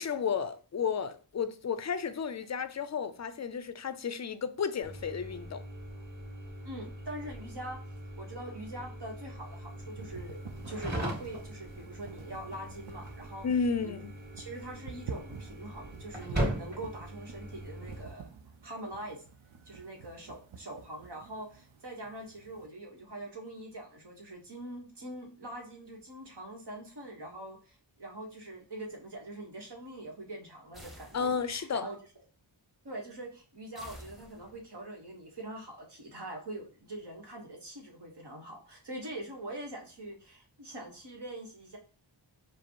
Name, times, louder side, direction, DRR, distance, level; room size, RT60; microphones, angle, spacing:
voice 1, 0.0-5.6 13.4-14.1 31.1-31.9, left 6 dB, 40° left, 0.4 m, -32 dB
sound 1, 4.8-18.0, right 1 dB, 20° right, 2.3 m, -40 dB
voice 2, 6.6-7.8 8.2-13.5 13.8-13.9 14.4-18.4 18.6-19.2 19.7-32.0 32.8-41.8, right 1 dB, 60° right, 1.1 m, -43 dB
sound 2, 9.4-22.7, right 6 dB, 85° right, 0.6 m, -49 dB
sound 3, 30.7-31.7 33.7-34.8, equal, ahead, 0.8 m, -51 dB
4.8 x 2.0 x 4.5 m
wide cardioid pair, 50°, 46 cm